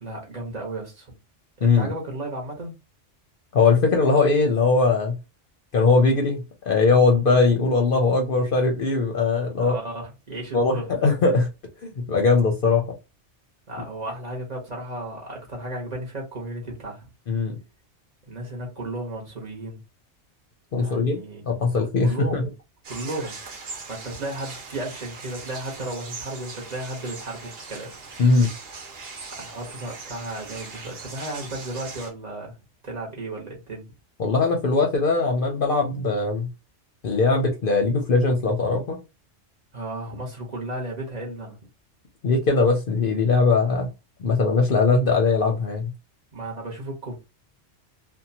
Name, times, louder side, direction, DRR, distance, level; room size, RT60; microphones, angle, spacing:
voice 1, 0.0-1.1 1.6-2.7 9.6-10.9 13.7-17.0 18.3-19.8 20.8-21.4 22.0-22.5 22.9-23.4 23.9-27.9 29.4-32.5 32.8-33.9 39.7-41.6 46.3-47.2, right 1 dB, 40° right, 0.9 m, -34 dB
voice 2, 3.5-5.2 5.7-9.7 10.5-11.5 11.8-12.8 17.3-17.6 20.7-21.2 21.5-22.5 28.2-28.5 34.2-36.5 37.0-39.0 42.2-43.9 44.2-45.9, left 3 dB, 60° left, 0.7 m, -20 dB
sound 1, 22.8-32.1, right 4 dB, 60° right, 1.0 m, -40 dB
2.7 x 2.1 x 2.7 m
omnidirectional pair, 1.2 m